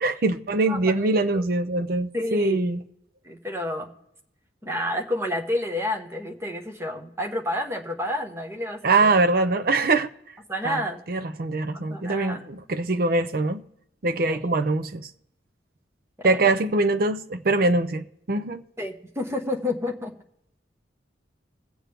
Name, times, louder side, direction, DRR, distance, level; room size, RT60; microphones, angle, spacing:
voice 1, 0.0-2.8 8.8-10.1 10.6-10.8 11.1-13.6 14.0-15.1 16.2-18.6, right 3 dB, 55° right, 0.6 m, -23 dB
voice 2, 0.7-1.0 1.3-1.4 2.1-2.7 3.2-3.9 4.6-9.1 10.5-11.0 11.7-12.4 14.3-14.4 16.2-16.5 18.8-20.1, left 1 dB, 15° right, 1.1 m, -30 dB
22.0 x 7.6 x 3.4 m
head